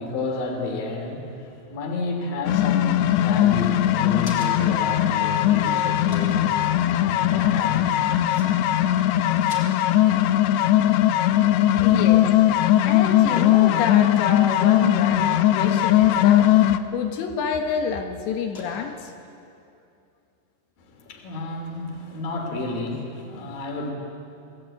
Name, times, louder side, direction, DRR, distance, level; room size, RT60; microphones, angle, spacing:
voice 1, 0.0-8.0 11.8-12.0 20.8-23.9, left 2 dB, 50° left, 3 dB, 4.3 m, -32 dB
sound 1, 2.5-16.8, left 12 dB, 90° left, 2.5 m, -19 dB
sound 2, 3.5-4.9 5.3-5.4 6.1-6.5 7.9-8.0 8.3-8.5 8.8-9.0 9.3-12.1 12.5-12.9 13.4-13.9 14.7-15.2 16.0-16.5 17.1-17.2 18.5-19.3, left 2 dB, 25° left, 3.3 m, -44 dB
voice 2, 11.8-12.3 12.8-16.5 16.9-19.1, left 6 dB, 70° left, 4 dB, 3.2 m, -28 dB
26.0 x 18.0 x 9.0 m, 2.6 s
omnidirectional pair, 5.9 m